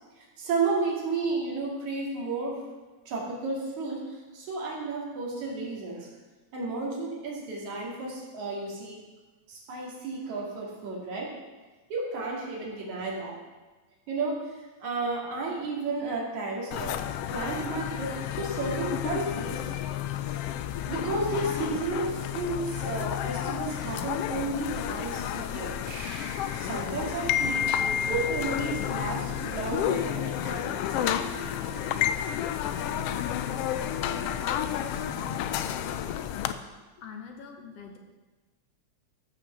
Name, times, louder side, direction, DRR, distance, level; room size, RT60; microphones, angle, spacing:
voice 1, 0.2-2.6 3.1-6.1 6.5-9.0 9.5-11.3 11.9-13.3 14.1-17.0 17.3-19.6 20.9-25.8 26.6-27.6 28.1-31.2, right 3 dB, 80° right, -2 dB, 3.6 m, -32 dB
sound 1, 16.7-36.5, left 10 dB, 85° left, 1.3 m, -31 dB
sound 2, 25.8-28.8, equal, 25° right, 3.6 m, -46 dB
sound 3, 29.2-36.0, left 1 dB, 40° left, 0.7 m, -43 dB
voice 2, 37.0-38.0, left 6 dB, 65° left, 3 dB, 1.9 m, -44 dB
13.5 x 6.1 x 6.7 m, 1.2 s
omnidirectional pair, 3.3 m